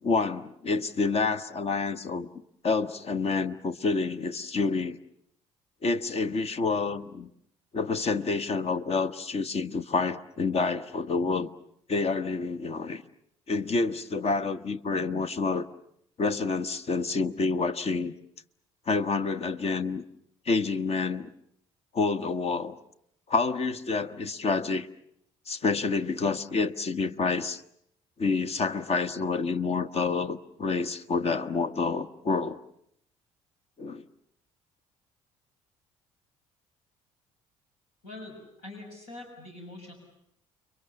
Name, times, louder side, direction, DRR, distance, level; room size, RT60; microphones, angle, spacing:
voice 1, 0.0-2.3 2.6-5.0 5.8-7.3 7.7-11.5 11.9-13.0 13.5-15.6 16.2-18.1 18.9-20.0 20.4-21.3 21.9-22.8 23.3-24.9 25.5-27.6 28.2-32.6 33.8-34.0, left 4 dB, 40° left, 1.2 m, -28 dB
voice 2, 38.0-39.9, left 2 dB, 70° left, 7.2 m, -44 dB
30.0 x 23.0 x 7.0 m
hypercardioid pair, 55°, 16 cm